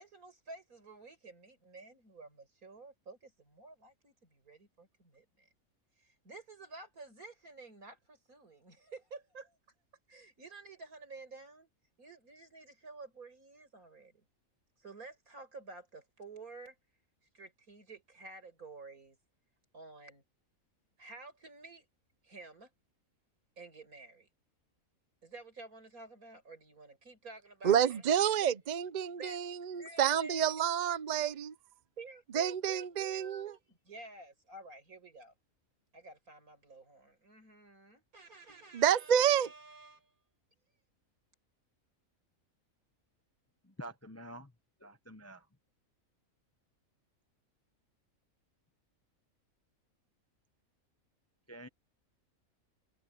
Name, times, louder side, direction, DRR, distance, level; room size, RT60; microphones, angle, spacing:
voice 1, 0.0-5.5 6.0-9.6 10.1-11.7 12.0-14.1 14.8-16.8 17.3-19.2 19.7-20.2 21.0-21.9 22.2-22.7 23.6-24.3 25.2-28.3 29.0-29.4 29.8-30.5 32.0-35.3 35.9-40.1, right 3 dB, 85° right, 5.7 m, -51 dB
voice 2, 27.6-31.5 32.3-33.5 38.7-39.5, right 9 dB, 45° right, 0.6 m, -29 dB
voice 3, 43.6-44.5 44.8-45.5 51.5-51.7, right 1 dB, 15° left, 0.6 m, -47 dB
omnidirectional pair, 1.5 m